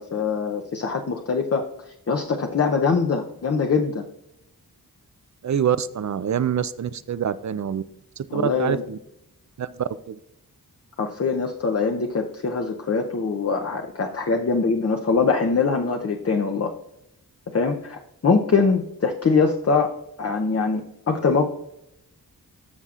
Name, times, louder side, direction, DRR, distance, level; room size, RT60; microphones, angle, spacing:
voice 1, 0.0-1.6 2.1-4.1 8.3-8.8 11.0-16.7 17.5-19.9 20.2-21.5, left 4 dB, 40° left, 3 dB, 0.7 m, -23 dB
voice 2, 5.4-7.8 8.2-9.0 9.6-10.2, right 8 dB, 50° right, 15 dB, 0.4 m, -26 dB
13.5 x 5.7 x 2.4 m, 0.81 s
wide cardioid pair, 80°, 38 cm